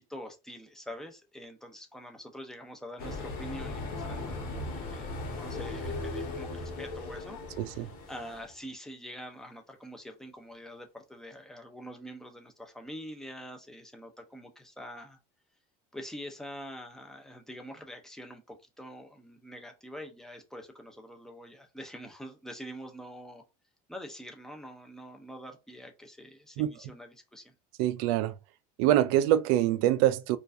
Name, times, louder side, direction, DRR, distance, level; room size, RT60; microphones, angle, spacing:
voice 1, 0.0-15.2 15.9-23.4 23.9-27.5, equal, ahead, 0.6 m, -45 dB
sound 1, 3.0-8.5, left 2 dB, 45° left, 1.5 m, -37 dB
voice 2, 7.6-7.9 26.6-26.7 27.8-28.3 28.8-30.4, right 13 dB, 70° right, 0.4 m, -25 dB
4.4 x 2.5 x 2.6 m
cardioid pair, 155°, 20 cm